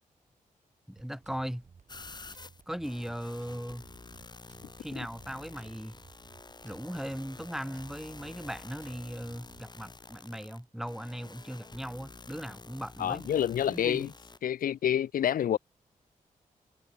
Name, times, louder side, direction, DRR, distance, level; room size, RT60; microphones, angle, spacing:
voice 1, 0.9-1.6 2.7-3.9 4.8-6.0 6.6-13.3 13.6-14.1, equal, 5° right, 1.4 m, -38 dB
sound 1, 1.0-9.6, right 5 dB, 55° right, 3.7 m, -58 dB
sound 2, 1.9-14.4, left 3 dB, 30° left, 1.7 m, -49 dB
voice 2, 13.0-14.1 14.4-15.6, left 10 dB, 80° left, 0.5 m, -28 dB
cardioid pair, 75°, 14 cm